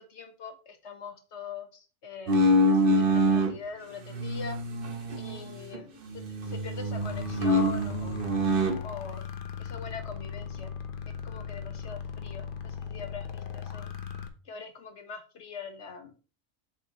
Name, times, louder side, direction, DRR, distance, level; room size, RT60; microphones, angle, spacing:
voice 1, 0.0-4.6 5.1-8.3 8.8-9.3 9.6-10.7 11.1-13.9 14.5-16.1, left 5 dB, 70° left, 7 dB, 1.6 m, -43 dB
sound 1, 2.3-3.5 4.1-5.8 6.1-8.8, equal, 50° right, 1.2 m, -25 dB
sound 2, 7.0-14.3, left 7 dB, 50° left, 1.1 m, -38 dB
8.2 x 7.2 x 3.0 m, 0.35 s
omnidirectional pair, 1.2 m